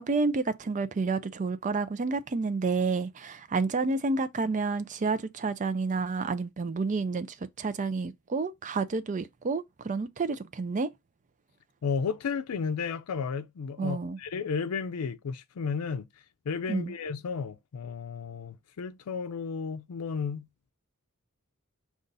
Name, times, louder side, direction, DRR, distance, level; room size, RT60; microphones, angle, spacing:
voice 1, 0.0-10.9 13.8-14.2 16.7-16.9, right 4 dB, 35° right, 0.4 m, -30 dB
voice 2, 11.8-16.1 16.5-20.5, left 5 dB, 90° left, 0.5 m, -33 dB
5.3 x 2.5 x 3.9 m
head